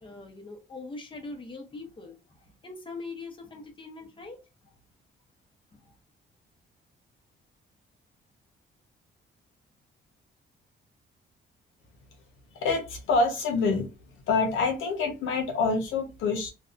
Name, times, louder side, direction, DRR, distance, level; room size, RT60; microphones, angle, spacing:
voice 1, 0.0-4.4 4.6-4.7 5.7-5.8, left 3 dB, 25° left, 0.8 m, -42 dB
voice 2, 12.6-13.9 14.3-16.5, left 4 dB, 85° left, 0.7 m, -26 dB
2.6 x 2.2 x 2.4 m
cardioid pair, 90°, 20 cm